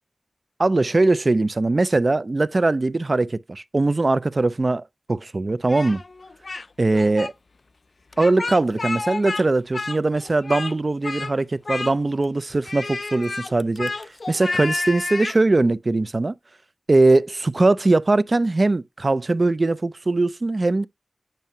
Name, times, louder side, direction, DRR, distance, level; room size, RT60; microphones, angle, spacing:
voice 1, 0.6-4.8 5.1-6.0 6.8-7.3 8.2-13.9 14.3-16.3 16.9-20.9, right 2 dB, 50° right, 0.5 m, -21 dB
Speech, 5.7-6.7 6.9-7.3 8.1-9.4 9.7-10.7 11.0-11.3 11.6-12.2 12.6-15.4, left 3 dB, 65° left, 0.3 m, -30 dB
9.1 x 5.6 x 2.7 m
wide cardioid pair, 65°, 0 cm